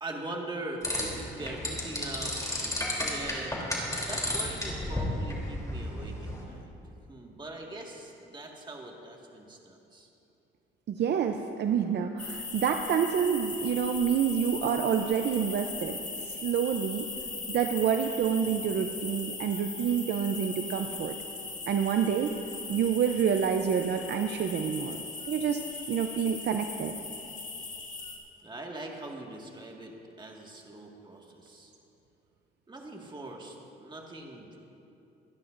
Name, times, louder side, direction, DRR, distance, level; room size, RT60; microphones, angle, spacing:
voice 1, 0.0-3.6 3.9-6.7 7.1-10.1 28.4-31.7 32.7-34.6, right 2 dB, 25° right, 0 dB, 1.9 m, -42 dB
sound 1, 0.8-6.4, left 1 dB, 15° left, 3.2 m, -33 dB
voice 2, 10.9-16.0 16.4-17.0 17.5-21.1 21.7-22.4 22.7-25.0 25.3-25.6 25.9-26.9, right 8 dB, 60° right, 5 dB, 0.6 m, -28 dB
sound 2, 12.2-28.2, left 4 dB, 35° left, 2.3 m, -39 dB
24.0 x 10.5 x 2.6 m, 2.8 s
cardioid pair, 90°, 20 cm